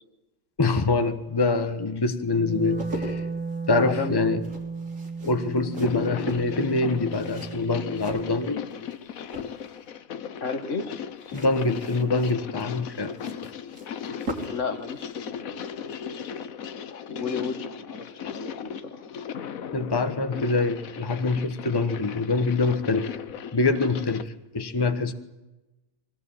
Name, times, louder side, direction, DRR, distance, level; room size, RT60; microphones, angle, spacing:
voice 1, 0.6-3.2 3.7-4.4 5.2-8.7 11.3-13.2 19.7-23.2 23.5-25.1, left 3 dB, 20° left, 8 dB, 1.2 m, -25 dB
Wind instrument woodwind instrument, 2.3-8.5, right 4 dB, 10° right, 1.4 m, -35 dB
sound 1, 2.5-9.0 9.2-9.9 11.2-14.7 15.0-15.1, equal, 70° right, 3.9 m, -40 dB
voice 2, 3.7-4.2 10.4-10.9 14.4-16.5 17.1-19.0, left 5 dB, 65° left, 8 dB, 2.0 m, -33 dB
sound 2, 5.6-24.3, left 8 dB, 90° left, 1.4 m, -37 dB
23.5 x 18.5 x 9.0 m, 1.0 s
omnidirectional pair, 1.4 m